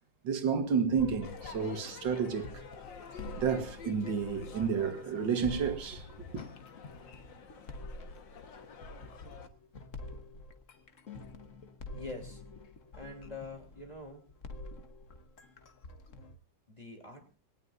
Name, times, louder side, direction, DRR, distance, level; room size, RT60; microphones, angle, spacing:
voice 1, 0.2-2.6 3.4-6.1, right 6 dB, 90° right, 2.1 m, -31 dB
sound 1, 1.0-16.4, left 2 dB, 45° left, 1.6 m, -47 dB
Crowd / Fireworks, 1.2-9.5, left 6 dB, 90° left, 2.2 m, -49 dB
voice 2, 11.9-12.4 12.9-14.3 16.7-17.4, left 2 dB, 20° left, 3.5 m, -45 dB
21.5 x 18.5 x 2.7 m
omnidirectional pair, 2.0 m